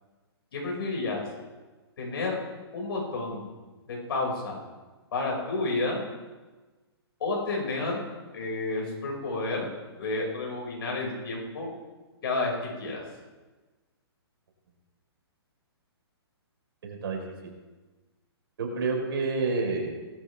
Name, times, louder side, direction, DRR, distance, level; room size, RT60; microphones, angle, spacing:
voice 1, 0.5-1.2 2.0-2.4 2.7-3.5 3.9-4.6 5.1-6.0 7.2-8.0 8.3-9.7 10.0-11.7 12.2-13.0, left 2 dB, 60° left, -2 dB, 5.7 m, -30 dB
voice 2, 16.8-17.5 18.6-20.0, right 3 dB, 60° right, 1 dB, 4.2 m, -29 dB
18.0 x 13.0 x 3.5 m, 1.2 s
hypercardioid pair, 160°, 14 cm